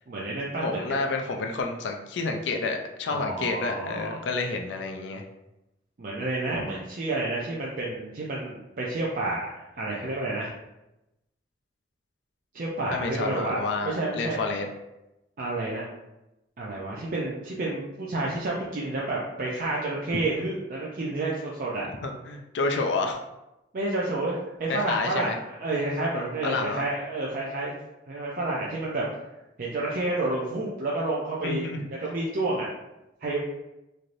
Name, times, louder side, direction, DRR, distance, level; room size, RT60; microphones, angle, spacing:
voice 1, 0.1-1.1 3.1-4.3 6.0-9.5 9.8-10.5 12.5-14.6 15.4-15.9 16.6-21.9 23.7-27.7 28.1-29.1 29.6-31.7 32.0-32.7 33.2-33.4, right 2 dB, 50° right, -4 dB, 0.4 m, -30 dB
voice 2, 0.6-5.2 6.5-6.6 12.9-14.7 22.0-23.2 24.7-25.4 26.4-26.9 31.4-31.9, left 3 dB, 80° left, 3 dB, 0.4 m, -29 dB
3.2 x 2.6 x 2.5 m, 0.93 s
head